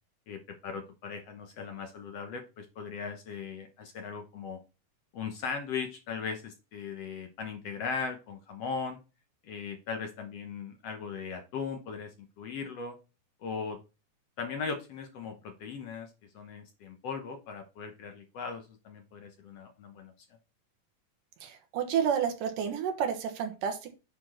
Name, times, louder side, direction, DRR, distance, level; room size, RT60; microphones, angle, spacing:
voice 1, 0.3-4.6 5.1-9.0 9.4-13.0 13.4-13.8 14.4-20.1, left 5 dB, 65° left, 5 dB, 1.8 m, -38 dB
voice 2, 21.4-23.9, right 8 dB, 80° right, 5 dB, 2.9 m, -30 dB
9.4 x 4.3 x 4.3 m, 0.30 s
omnidirectional pair, 3.7 m